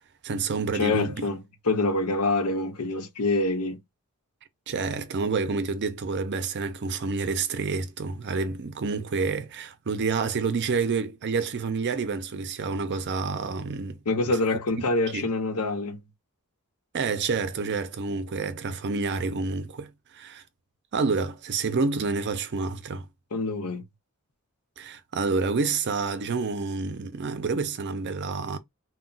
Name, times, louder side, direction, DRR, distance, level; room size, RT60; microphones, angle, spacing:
voice 1, 0.2-1.3 4.7-14.0 14.8-14.9 15.1-15.3 16.9-20.4 20.9-23.1 24.8-28.6, right 4 dB, 50° right, 0.5 m, -28 dB
voice 2, 0.7-1.4 1.7-3.8 14.1-16.0 23.3-23.8, left 2 dB, 85° left, 0.7 m, -26 dB
2.2 x 2.2 x 3.8 m
head